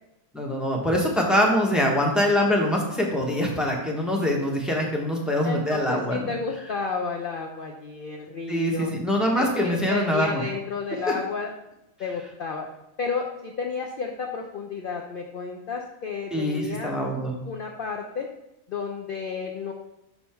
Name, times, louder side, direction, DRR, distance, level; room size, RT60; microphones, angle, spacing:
voice 1, 0.3-6.3 8.5-10.4 16.3-17.3, equal, ahead, 0 dB, 1.0 m, -24 dB
voice 2, 5.4-8.9 9.4-11.5 12.0-12.7 13.0-16.9 17.4-18.3 18.7-19.7, left 5 dB, 55° left, 2 dB, 0.7 m, -32 dB
6.2 x 5.5 x 4.4 m, 0.88 s
omnidirectional pair, 1.4 m